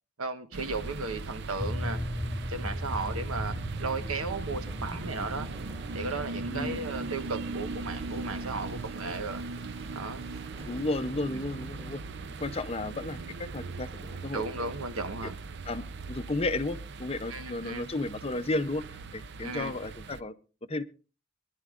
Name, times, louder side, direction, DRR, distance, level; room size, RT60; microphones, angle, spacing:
voice 1, 0.2-2.0 2.5-5.5 5.9-9.4 9.9-10.2 14.3-15.3 17.3-17.8 19.4-19.7, right 3 dB, 90° right, 9 dB, 1.1 m, -35 dB
sound 1, 0.5-20.2, right 3 dB, 55° right, 0.5 m, -39 dB
sound 2, 1.6-10.1, equal, 5° right, 1.9 m, -38 dB
sound 3, 2.8-13.6, right 1 dB, 30° right, 3.3 m, -54 dB
voice 2, 6.5-6.8 10.7-12.0 12.4-14.4 15.7-18.8 19.1-20.3 20.7-20.8, left 2 dB, 30° left, 11 dB, 0.6 m, -33 dB
23.0 x 11.5 x 2.5 m, 0.34 s
head